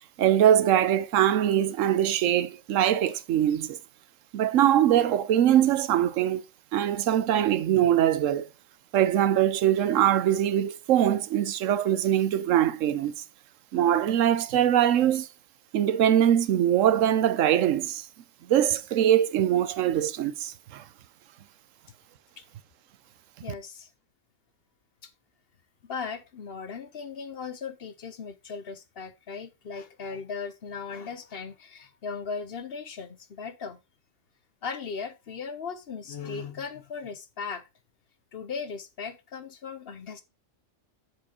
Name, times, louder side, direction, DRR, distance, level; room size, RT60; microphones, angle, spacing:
voice 1, 0.2-3.8 4.3-6.4 6.7-8.5 8.9-13.1 13.7-15.3 15.7-18.0 18.5-20.8, right 11 dB, 80° right, 1.0 m, -22 dB
voice 2, 23.4-23.9 25.0-25.1 25.8-33.8 34.6-37.6 38.3-40.2, left 5 dB, 55° left, 0.9 m, -37 dB
7.3 x 4.9 x 4.1 m
omnidirectional pair, 1.3 m